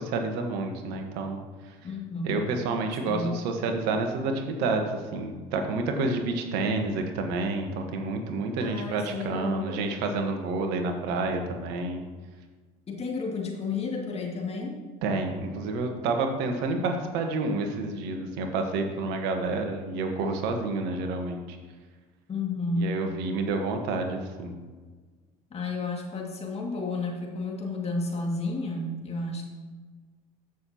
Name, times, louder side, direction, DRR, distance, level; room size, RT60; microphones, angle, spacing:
voice 1, 0.0-1.4 1.6-1.7 2.2-12.1 15.0-21.6 22.8-24.6, right 3 dB, 65° right, 4 dB, 1.4 m, -29 dB
voice 2, 1.8-2.5 3.1-3.3 8.6-9.8 12.9-14.8 22.3-23.0 25.5-29.5, left 3 dB, 35° left, 0 dB, 2.3 m, -32 dB
14.0 x 6.4 x 2.9 m, 1.4 s
hypercardioid pair, 65°, 19 cm